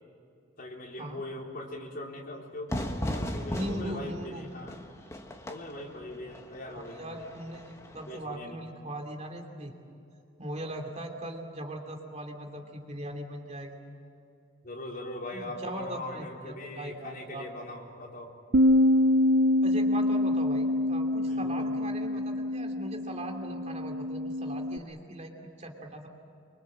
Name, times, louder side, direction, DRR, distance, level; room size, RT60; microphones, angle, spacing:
voice 1, 0.6-4.8 5.5-7.2 8.1-8.6 14.6-18.3 21.3-21.7, left 1 dB, 45° left, -1 dB, 3.9 m, -41 dB
Fire / Fireworks, 2.7-8.2, left 1 dB, 15° left, 1.4 m, -37 dB
voice 2, 3.5-4.5 6.7-9.7 10.4-13.8 15.3-17.5 19.6-25.3 25.6-26.1, right 1 dB, 35° right, 3 dB, 2.8 m, -39 dB
Bass guitar, 18.5-24.8, left 1 dB, 50° right, 0.6 m, -25 dB
25.5 x 25.0 x 7.6 m, 2.6 s
head